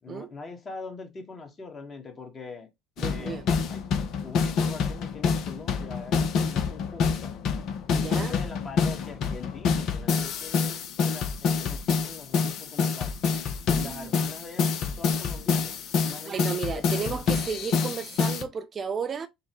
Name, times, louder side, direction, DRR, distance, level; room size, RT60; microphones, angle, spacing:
voice 1, 0.0-2.7 3.0-3.8 4.2-7.4 7.9-13.2 13.7-15.8 16.0-17.3, left 4 dB, 30° left, 1.2 m, -43 dB
sound 1, 3.0-18.4, left 5 dB, 50° left, 0.6 m, -27 dB
voice 2, 3.0-3.5 8.0-8.4 13.7-14.2 16.2-19.3, right 6 dB, 35° right, 0.4 m, -33 dB
5.3 x 2.1 x 2.9 m
figure-of-eight pair, 60°, 0 cm